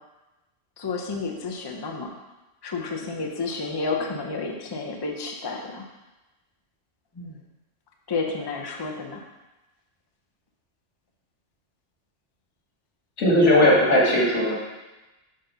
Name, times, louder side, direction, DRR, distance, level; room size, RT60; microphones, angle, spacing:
voice 1, 0.8-2.1 2.6-5.9 7.2-7.3 8.1-9.2, left 4 dB, 25° left, 2 dB, 0.6 m, -31 dB
voice 2, 13.2-14.6, left 1 dB, 90° left, -4 dB, 2.0 m, -18 dB
6.6 x 4.0 x 5.5 m, 1.1 s
omnidirectional pair, 1.2 m